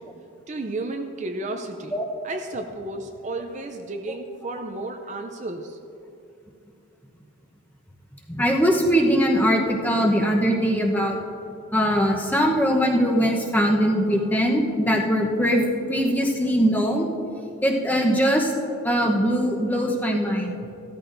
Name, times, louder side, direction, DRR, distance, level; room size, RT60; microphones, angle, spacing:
voice 1, 0.5-2.0 2.2-5.8, right 2 dB, 35° right, 5 dB, 0.5 m, -32 dB
voice 2, 8.3-11.2 11.7-17.1 17.6-18.5 18.8-20.6, equal, 10° left, 0 dB, 0.9 m, -21 dB
15.5 x 13.0 x 2.6 m, 2.7 s
head